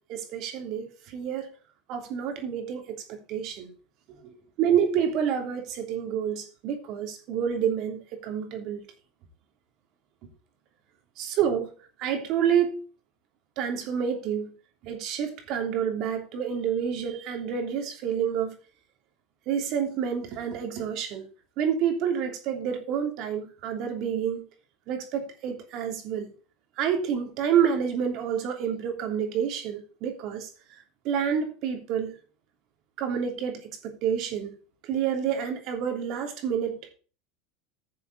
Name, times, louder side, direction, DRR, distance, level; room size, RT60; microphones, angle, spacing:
voice 1, 0.1-1.5 1.9-3.7 4.2-4.3 4.6-8.8 11.2-11.7 12.0-12.8 13.6-14.5 14.8-18.5 19.5-21.3 21.6-24.4 24.9-26.3 26.8-30.5 31.0-32.1 33.0-34.5 34.8-36.8, right 8 dB, 55° right, 3.0 m, -28 dB
11.5 x 6.9 x 4.1 m
supercardioid pair, 115°, 0 cm